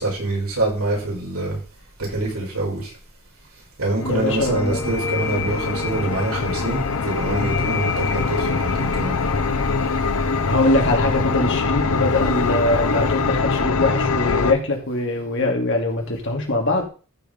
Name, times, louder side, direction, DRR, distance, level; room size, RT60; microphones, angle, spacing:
voice 1, 0.0-1.6 2.0-3.0 3.8-9.2, right 2 dB, 80° right, 5.5 m, -25 dB
sound 1, 4.0-14.5, left 4 dB, 85° left, 0.8 m, -23 dB
voice 2, 4.0-4.8 10.5-16.9, left 2 dB, 60° left, 2.6 m, -22 dB
sound 2, 4.6-12.0, left 4 dB, 20° left, 0.9 m, -33 dB
14.0 x 5.1 x 5.3 m
head